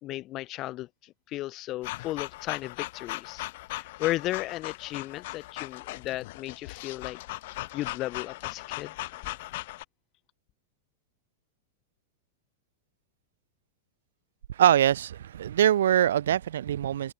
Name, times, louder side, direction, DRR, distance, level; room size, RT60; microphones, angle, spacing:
voice 1, 0.0-3.4 3.7-7.2 7.7-8.9 9.2-9.3, left 16 dB, 35° left, 0.4 m, -35 dB
sound 1, 1.8-9.8, left 19 dB, 50° left, 1.0 m, -38 dB
voice 2, 14.5-17.1, right 10 dB, 60° right, 0.4 m, -23 dB
figure-of-eight pair, 90°, 0 cm